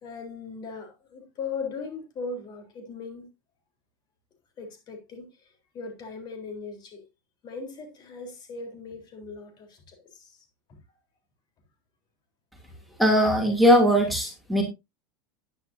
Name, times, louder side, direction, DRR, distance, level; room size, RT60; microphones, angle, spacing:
voice 1, 0.0-3.3 4.6-5.5 5.7-7.1 7.4-10.8, left 4 dB, 40° left, 3.8 m, -39 dB
voice 2, 13.0-14.6, equal, ahead, 2.7 m, -20 dB
10.5 x 9.6 x 2.7 m
supercardioid pair, 120°, 11 cm